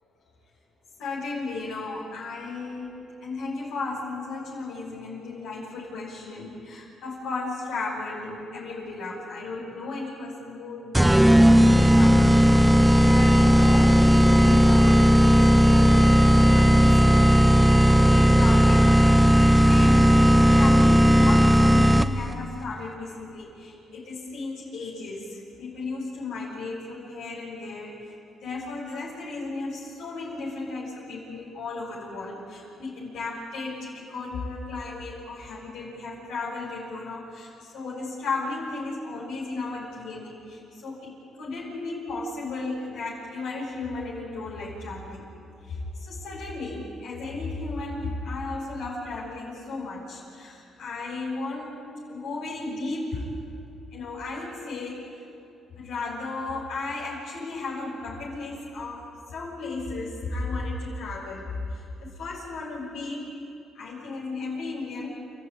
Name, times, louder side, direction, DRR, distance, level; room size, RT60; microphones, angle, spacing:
voice 1, 1.0-2.9 3.2-16.0 16.4-20.1 20.5-27.9 28.4-45.3 45.6-51.8 52.1-53.2 53.9-55.0 55.7-63.3 63.7-65.1, left 3 dB, 80° left, -8 dB, 6.7 m, -35 dB
sound 1, 10.9-22.3, equal, 10° right, 0.8 m, -16 dB
29.5 x 15.0 x 9.8 m, 2.5 s
cardioid pair, 90°, 0 cm